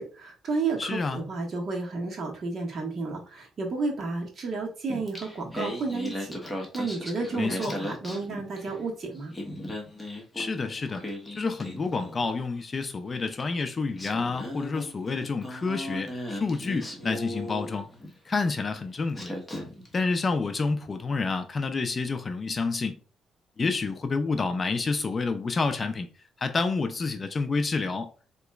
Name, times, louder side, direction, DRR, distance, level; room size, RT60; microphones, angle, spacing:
voice 1, 0.0-9.3, right 3 dB, 50° right, 1.3 m, -32 dB
voice 2, 0.8-1.2 7.4-7.8 10.3-11.0 11.3-17.9 18.3-19.4 19.9-23.0 23.6-26.1 26.4-28.1, left 4 dB, 35° left, 0.5 m, -29 dB
Singing, 4.9-8.8 9.2-12.4 13.4-13.5 14.0-18.2 18.8-18.9 19.1-19.9, left 1 dB, 10° left, 1.2 m, -37 dB
4.2 x 3.0 x 2.4 m
cardioid pair, 90°, 0 cm